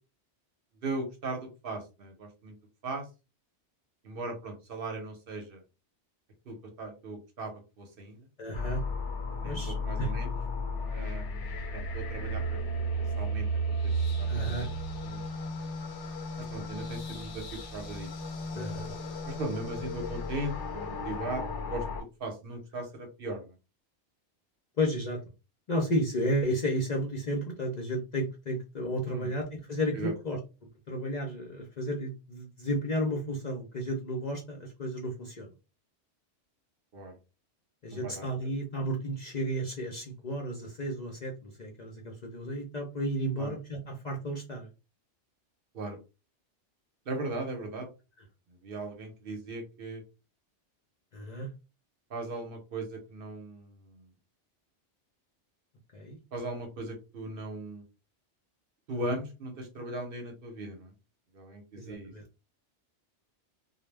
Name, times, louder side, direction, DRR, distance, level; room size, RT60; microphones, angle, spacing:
voice 1, 0.8-2.5 2.8-3.1 4.0-5.6 6.5-8.3 9.4-10.3 10.9-13.9 14.2-14.7 15.0-15.2 16.4-18.1 18.5-18.9 19.3-21.4 21.7-23.5 29.1-29.3 29.9-30.1 36.9-37.2 37.9-38.5 43.4-43.5 45.7-46.0 47.1-47.9 48.6-50.0 52.1-54.0 56.3-57.8 58.9-60.9 61.3-62.1, right 2 dB, 60° right, 3 dB, 0.8 m, -38 dB
voice 2, 8.4-8.8 9.4-10.1 14.3-14.7 18.5-18.9 24.8-25.2 25.7-30.4 30.9-35.5 37.8-44.7 51.1-51.5 55.9-56.2 61.8-62.2, equal, 50° left, 0 dB, 0.5 m, -33 dB
sound 1, 8.5-22.0, equal, 85° left, 1.0 m, -34 dB
2.2 x 2.1 x 3.2 m, 0.29 s
omnidirectional pair, 1.2 m